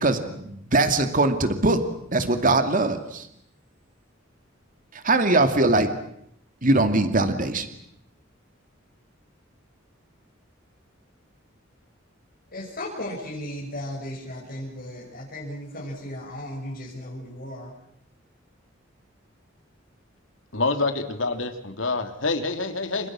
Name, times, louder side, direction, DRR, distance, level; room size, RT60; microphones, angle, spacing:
voice 1, 0.0-1.8 2.1-3.3 5.0-5.9 6.6-7.7, right 2 dB, 45° right, 8 dB, 2.5 m, -21 dB
voice 2, 12.5-17.7, left 1 dB, 50° left, -4 dB, 6.5 m, -35 dB
voice 3, 20.5-23.1, left 3 dB, 80° left, 7 dB, 3.2 m, -26 dB
30.0 x 26.5 x 6.3 m, 0.73 s
head